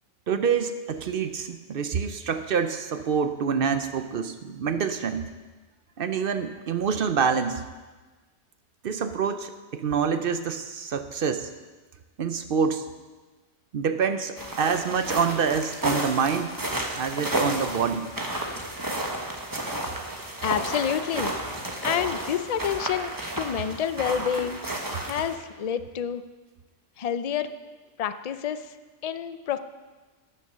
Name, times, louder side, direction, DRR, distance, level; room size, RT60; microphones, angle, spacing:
voice 1, 0.3-5.3 6.0-7.6 8.8-11.5 12.2-12.9 13.7-16.6 16.9-18.1, right 6 dB, 55° right, 10 dB, 0.7 m, -26 dB
sound 1, 14.4-25.4, right 1 dB, 20° right, 1.1 m, -32 dB
voice 2, 20.4-21.3 21.8-24.6 25.0-26.2 27.0-27.5 28.0-28.7 29.0-29.6, left 9 dB, 55° left, 11 dB, 0.4 m, -28 dB
12.0 x 6.7 x 6.6 m, 1.3 s
omnidirectional pair, 1.2 m